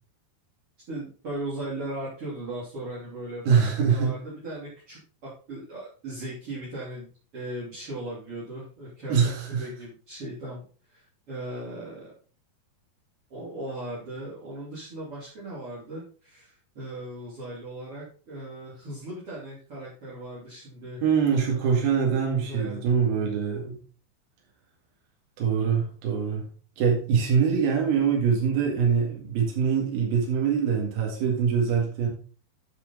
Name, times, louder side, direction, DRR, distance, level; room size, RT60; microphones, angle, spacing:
voice 1, 0.9-10.6 10.9-12.1 13.3-21.0 21.3-21.8 22.5-22.8, right 1 dB, 40° right, -8 dB, 3.4 m, -38 dB
voice 2, 3.5-4.1 9.1-9.7 21.0-23.8 25.4-26.5 26.8-32.1, right 6 dB, 70° right, -1 dB, 3.9 m, -24 dB
11.0 x 6.1 x 3.8 m, 0.39 s
omnidirectional pair, 4.5 m